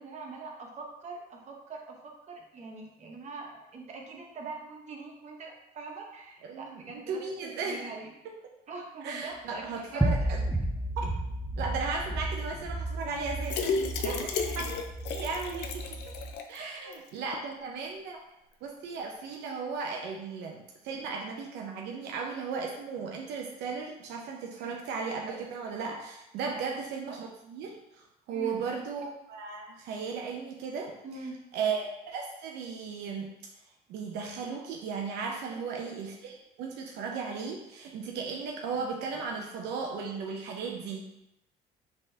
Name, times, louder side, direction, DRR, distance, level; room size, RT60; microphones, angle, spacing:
voice 1, 0.0-2.0 2.3-8.1 8.7-9.6 9.9-10.1 14.0-14.3 16.6-17.0 24.6-24.9 26.5-26.6 28.3-28.6 31.0-31.4 35.5-35.6, right 3 dB, 45° right, 0 dB, 1.0 m, -43 dB
voice 2, 6.5-7.8 9.0-10.5 11.0-11.1 11.6-13.7 14.1-14.2 14.6-14.8 15.0-15.9 16.5-18.2 18.6-28.0 28.3-30.9 31.5-33.3 33.9-41.0, right 5 dB, 80° right, 0 dB, 0.7 m, -36 dB
sound 1, 10.0-16.3, right 1 dB, 5° right, 0.6 m, -33 dB
sound 2, 13.4-16.6 16.9-17.0 17.3-17.4, left 5 dB, 85° left, 0.5 m, -33 dB
5.2 x 3.5 x 2.8 m, 0.86 s
cardioid pair, 110°, 17 cm